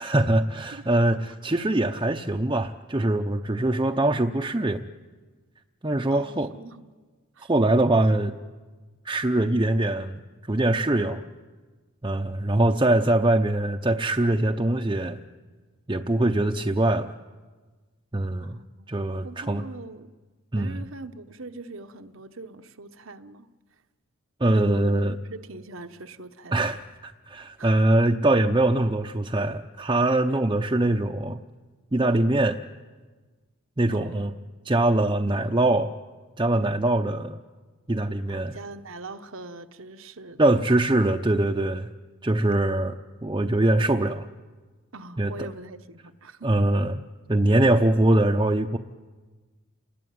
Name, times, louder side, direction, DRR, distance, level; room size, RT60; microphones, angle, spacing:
voice 1, 0.0-4.8 5.8-6.5 7.4-8.3 9.0-10.2 10.5-11.2 12.0-15.2 15.9-17.1 18.1-18.6 18.9-19.6 20.5-20.8 24.4-25.2 26.5-31.4 31.9-32.6 33.8-34.3 34.6-35.9 36.4-37.4 37.9-38.5 40.4-41.9 42.2-42.9 43.2-44.2 45.2-45.5 46.4-47.0 47.3-48.8, right 1 dB, 20° right, 0.7 m, -23 dB
voice 2, 0.7-1.2 6.1-6.9 7.4-7.5 18.4-18.7 19.2-20.1 20.5-23.5 24.5-26.7 27.6-27.8 33.9-34.3 35.3-35.8 38.3-40.5 44.9-46.5, right 2 dB, 65° right, 1.0 m, -42 dB
29.0 x 20.5 x 9.4 m
head